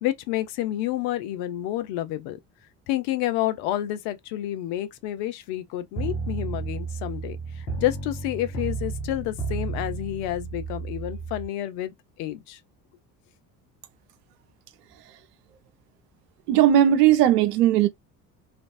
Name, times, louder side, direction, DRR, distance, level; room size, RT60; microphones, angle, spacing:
voice 1, 0.0-2.4 2.9-12.6, left 13 dB, 55° left, 0.6 m, -29 dB
sound 1, 6.0-11.5, right 4 dB, 75° left, 1.6 m, -32 dB
voice 2, 16.5-17.9, right 11 dB, 70° right, 0.7 m, -18 dB
3.1 x 2.5 x 2.4 m
figure-of-eight pair, 55°, 49 cm